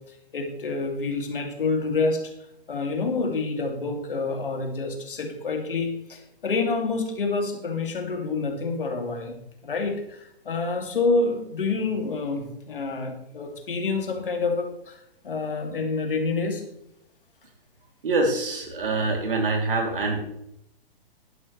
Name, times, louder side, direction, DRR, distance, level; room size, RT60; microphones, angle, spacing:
voice 1, 0.3-2.2 2.7-9.4 9.6-16.6, left 3 dB, 60° left, 4 dB, 2.6 m, -27 dB
voice 2, 18.0-20.2, right 3 dB, 60° right, 2 dB, 3.1 m, -25 dB
11.5 x 11.5 x 3.2 m, 0.78 s
figure-of-eight pair, 120°, 30 cm